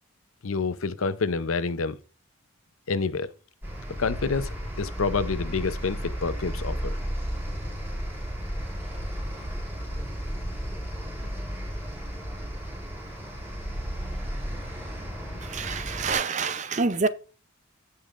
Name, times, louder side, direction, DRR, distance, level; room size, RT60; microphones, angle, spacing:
voice 1, 0.4-2.0 2.9-3.3 4.0-7.0, left 4 dB, 85° left, 0.7 m, -28 dB
sound 1, 3.6-16.2, equal, 10° right, 4.4 m, -33 dB
voice 2, 15.4-17.1, right 4 dB, 35° right, 0.5 m, -27 dB
16.5 x 5.5 x 2.5 m
head